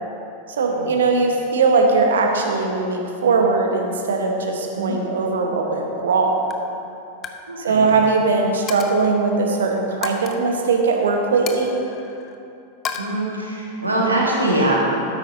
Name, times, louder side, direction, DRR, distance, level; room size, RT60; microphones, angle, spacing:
voice 1, 0.6-6.5 7.6-11.8, right 4 dB, 65° right, 2 dB, 1.1 m, -20 dB
Coin (dropping), 5.9-6.2 6.5-6.7 7.1-7.4 7.7-7.9 8.7-9.1 10.0-10.4 11.5-12.4 12.9-13.0, left 7 dB, 30° left, 0.7 m, -32 dB
voice 2, 7.5-7.9 13.0-14.8, right 1 dB, 80° right, -3 dB, 1.9 m, -23 dB
12.5 x 9.8 x 2.8 m, 2.7 s
figure-of-eight pair, 90°, 0 cm